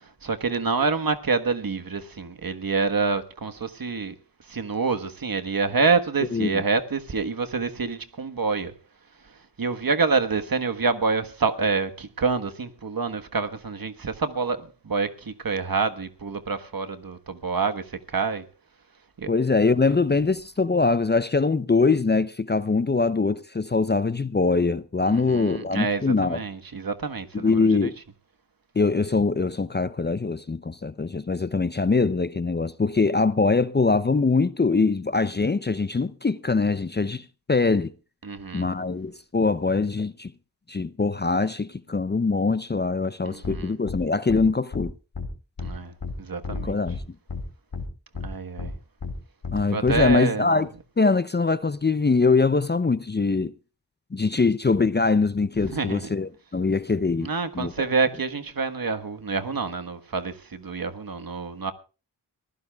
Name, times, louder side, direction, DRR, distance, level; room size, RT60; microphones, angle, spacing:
voice 1, 0.0-4.1 4.5-8.7 9.6-18.4 19.2-19.3 25.1-27.9 38.2-38.7 43.2-43.7 45.6-46.8 48.2-48.7 49.7-50.5 55.6-56.1 57.2-61.7, right 4 dB, 55° right, 1.4 m, -27 dB
voice 2, 6.3-6.6 19.3-26.4 27.3-28.0 28.8-37.9 38.5-40.3 40.7-44.9 46.6-47.0 49.5-50.7 51.0-53.5 54.1-57.7, left 4 dB, 25° left, 0.6 m, -23 dB
sound 1, 43.4-43.6 43.9-44.0 44.3-44.4 44.7-44.9 45.1-45.3 45.6-45.7 46.0-46.1 46.4-47.0 47.3-47.4 47.7-47.8 48.1-48.3 48.6-48.7 49.0-49.1 49.4-49.6 49.9-50.1, left 4 dB, 65° left, 2.8 m, -32 dB
23.0 x 15.0 x 2.4 m
cardioid pair, 45°, 43 cm